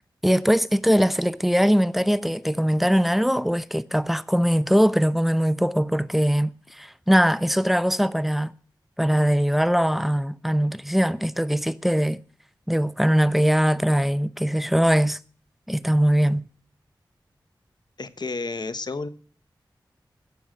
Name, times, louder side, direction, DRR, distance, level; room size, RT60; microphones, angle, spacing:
voice 1, 0.2-8.5 9.0-12.2 12.7-15.2 15.7-16.5, equal, ahead, 0.8 m, -21 dB
voice 2, 18.0-19.1, left 3 dB, 60° left, 1.2 m, -31 dB
16.0 x 7.0 x 7.7 m
cardioid pair, 45°, 8 cm